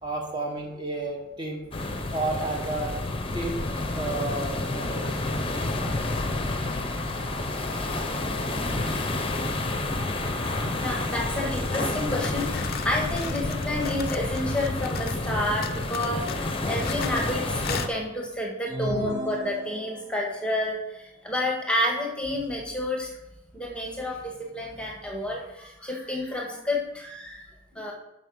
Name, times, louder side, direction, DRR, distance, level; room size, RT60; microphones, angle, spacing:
voice 1, 0.0-1.6 2.1-2.9 3.3-3.6 3.9-5.2, right 2 dB, 20° right, 0 dB, 1.5 m, -31 dB
sound 1, 1.7-17.9, left 2 dB, 25° left, 0.9 m, -29 dB
voice 2, 5.5-6.0 6.6-6.7 7.4-7.7 8.0-8.3 8.7-8.8 9.4-9.5 10.8-23.2 23.5-27.9, left 1 dB, 5° left, -1 dB, 1.6 m, -30 dB
sound 2, 11.9-15.3 15.6-17.3 17.6-17.9, left 9 dB, 45° left, 0.5 m, -38 dB
sound 3, 18.7-20.3, equal, 45° right, 2.5 m, -34 dB
9.1 x 5.7 x 6.4 m, 0.93 s
head